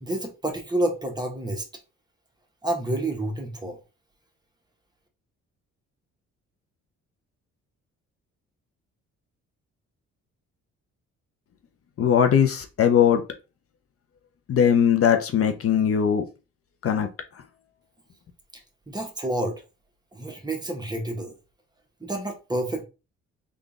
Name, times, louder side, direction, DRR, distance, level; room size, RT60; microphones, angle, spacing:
voice 1, 0.0-1.6 2.6-3.8 18.9-19.6 20.1-21.3 22.0-22.8, right 1 dB, 15° right, 1.1 m, -29 dB
voice 2, 12.0-13.2 14.5-16.3 16.8-17.4, left 8 dB, 50° left, 0.6 m, -20 dB
3.8 x 2.5 x 3.5 m
cardioid pair, 90°, 30 cm